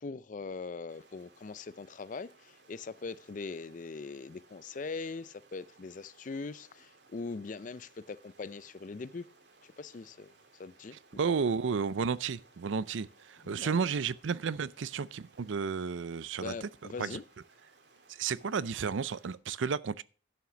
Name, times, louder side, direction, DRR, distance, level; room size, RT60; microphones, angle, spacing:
voice 1, 0.0-9.3 9.6-10.3 10.6-11.0 13.4-13.8 16.4-17.2, left 4 dB, 45° left, 0.4 m, -41 dB
Stream, 0.9-19.3, right 3 dB, 65° right, 2.0 m, -62 dB
voice 2, 11.2-16.7 17.0-17.2 18.1-20.0, right 5 dB, 90° right, 0.5 m, -32 dB
11.5 x 5.8 x 6.1 m
head